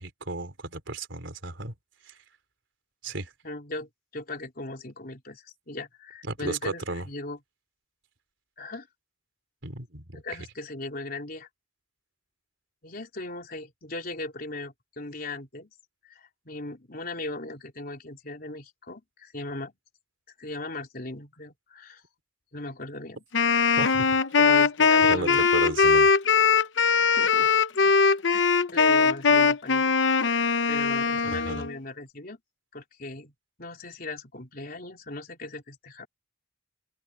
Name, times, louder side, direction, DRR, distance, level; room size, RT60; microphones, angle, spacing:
voice 1, 0.0-1.7 2.0-2.2 3.0-3.3 6.3-7.1 9.6-10.2 23.8-24.1 25.1-26.1 31.2-31.6, right 2 dB, 80° right, 3.2 m, -34 dB
voice 2, 3.4-7.4 8.6-8.9 10.1-11.5 12.8-15.7 16.0-19.7 20.4-22.0 22.5-23.2 24.4-25.5 27.0-27.5 27.8-28.0 28.3-30.0 30.2-32.4 32.7-33.3 33.6-36.1, left 2 dB, 50° left, 3.7 m, -38 dB
Wind instrument woodwind instrument, 23.3-31.7, left 5 dB, 75° left, 0.8 m, -21 dB
head